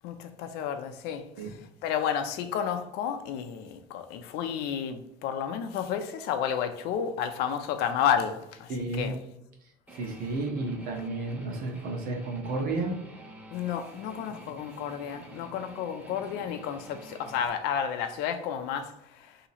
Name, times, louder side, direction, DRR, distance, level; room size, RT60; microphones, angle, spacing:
voice 1, 0.0-1.6 1.8-9.2 13.5-19.4, left 8 dB, 65° left, 0.5 m, -31 dB
voice 2, 8.7-9.1 9.9-12.9, right 2 dB, 55° right, 1.0 m, -32 dB
Guitar, 9.9-17.5, right 2 dB, 10° right, 0.6 m, -49 dB
2.9 x 2.8 x 4.1 m
cardioid pair, 135°, 18 cm